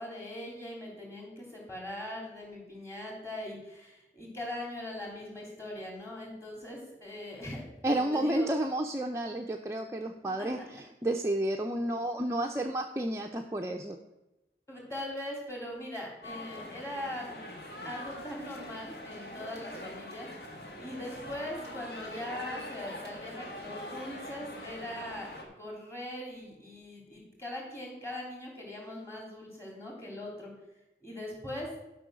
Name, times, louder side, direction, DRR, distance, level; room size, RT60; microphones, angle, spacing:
voice 1, 0.0-8.5 10.4-10.5 14.7-17.3 17.8-20.3 20.7-25.3 25.6-30.5 31.0-31.7, left 1 dB, 15° left, -1 dB, 2.9 m, -41 dB
voice 2, 7.8-14.0, right 1 dB, 15° right, 2 dB, 0.5 m, -31 dB
sound 1, 16.2-25.4, left 1 dB, 60° left, 1.8 m, -43 dB
11.5 x 5.5 x 6.3 m, 0.98 s
head